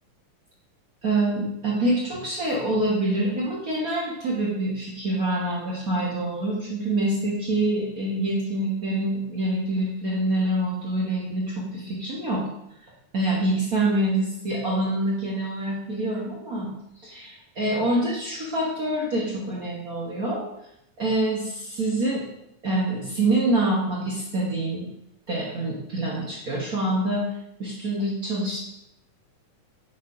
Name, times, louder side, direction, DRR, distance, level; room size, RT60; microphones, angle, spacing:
voice 1, 1.0-12.5 13.1-16.7 17.0-20.4 21.0-22.2 22.6-24.9 25.3-27.2 27.6-28.6, right 1 dB, 65° right, -4 dB, 0.9 m, -26 dB
7.1 x 4.2 x 4.8 m, 0.81 s
omnidirectional pair, 3.4 m